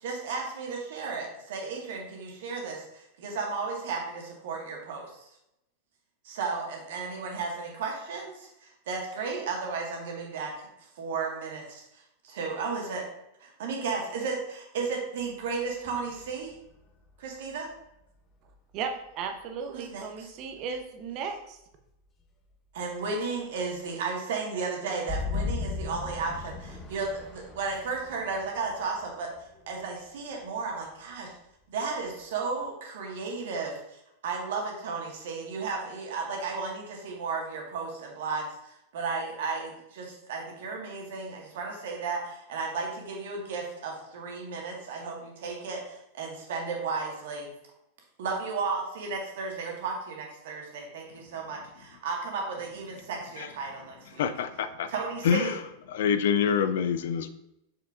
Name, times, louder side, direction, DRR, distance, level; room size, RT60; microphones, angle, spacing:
voice 1, 0.0-5.3 6.2-10.7 11.0-13.1 13.4-16.5 17.2-17.7 19.7-20.3 22.7-29.3 29.7-31.3 31.7-33.8 34.2-47.5 48.2-54.3 54.9-55.5, right 4 dB, 55° right, 1.6 m, -34 dB
sound 1, 15.9-16.8 18.5-18.6 25.1-29.7, left 4 dB, 25° left, 0.8 m, -36 dB
voice 2, 18.7-21.6, right 6 dB, 40° right, 0.8 m, -35 dB
voice 3, 54.1-54.9 55.2-55.6 55.9-57.3, left 7 dB, 55° left, 0.4 m, -26 dB
6.6 x 5.7 x 2.5 m
figure-of-eight pair, 90°, 0 cm